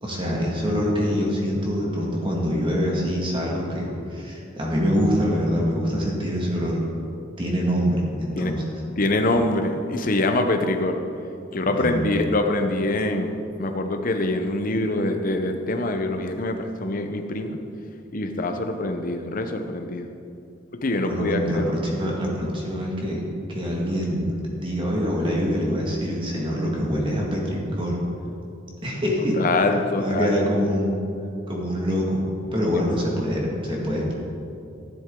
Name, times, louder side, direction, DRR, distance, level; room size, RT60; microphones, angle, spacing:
voice 1, 0.0-6.8 7.4-8.7 11.6-12.1 21.0-23.2 23.5-28.0 28.8-29.4 29.9-30.9 31.5-32.2 32.5-34.1, equal, 25° right, -2 dB, 1.9 m, -25 dB
voice 2, 9.0-11.0 11.5-17.6 18.1-20.1 20.8-21.6 29.4-30.3, left 2 dB, 45° left, 6 dB, 0.8 m, -24 dB
12.0 x 11.0 x 3.8 m, 2.6 s
head